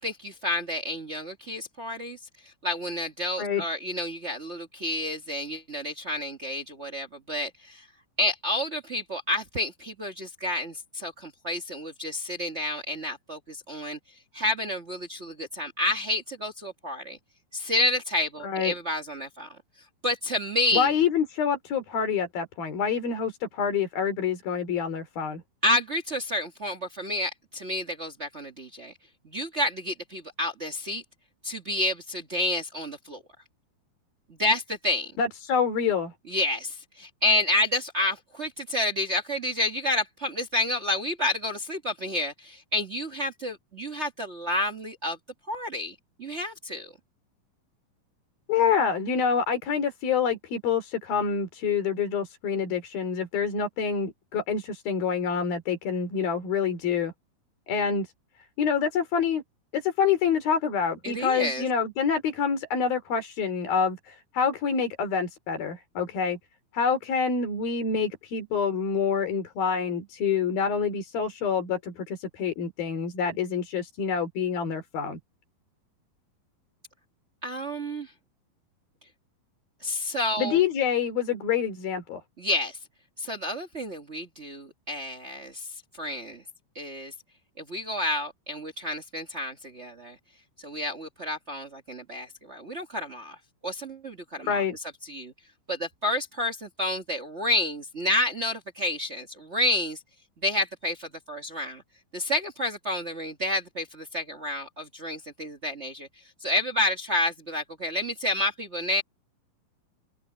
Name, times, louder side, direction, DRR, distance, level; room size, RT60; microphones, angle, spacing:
voice 1, 0.0-7.9 8.2-14.0 14.3-17.2 17.5-19.6 20.0-20.9 25.6-28.9 29.2-31.0 31.4-33.2 34.4-35.1 36.3-45.2 45.5-46.9 61.0-61.6 77.4-78.1 79.8-80.6 82.4-82.8 83.2-86.4 86.7-87.1 87.6-90.2 90.6-93.4 93.6-94.6 95.0-95.3 95.7-100.0 100.4-101.8 102.1-109.0, left 1 dB, 85° right, 0.6 m, -30 dB
voice 2, 18.4-18.7 20.7-25.4 35.2-36.1 48.5-57.1 57.7-58.1 58.6-59.4 59.7-66.4 66.7-75.2 80.4-82.2 94.5-94.8, left 6 dB, 70° left, 5.2 m, -27 dB
open air
omnidirectional pair, 4.3 m